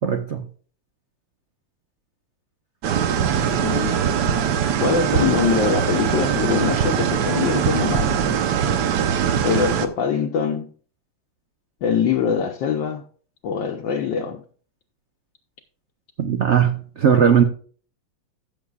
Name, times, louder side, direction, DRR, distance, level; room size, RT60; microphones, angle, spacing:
voice 1, 0.0-0.5 16.2-17.4, right 8 dB, 90° right, 0.6 m, -18 dB
sound 1, 2.8-9.9, right 8 dB, 65° right, 1.2 m, -21 dB
voice 2, 3.6-4.1 4.8-8.2 9.4-10.7 11.8-13.0 13.4-14.4, left 7 dB, 65° left, 1.3 m, -23 dB
15.5 x 7.0 x 2.4 m
omnidirectional pair, 2.4 m